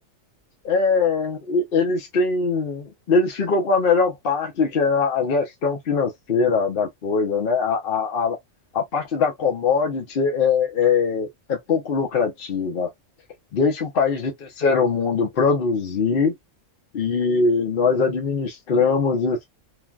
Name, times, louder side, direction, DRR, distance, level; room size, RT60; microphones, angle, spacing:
voice 1, 0.6-8.4 8.7-12.9 13.5-16.3 16.9-19.4, left 4 dB, 50° left, 0.8 m, -22 dB
3.2 x 2.2 x 2.3 m
omnidirectional pair, 1.3 m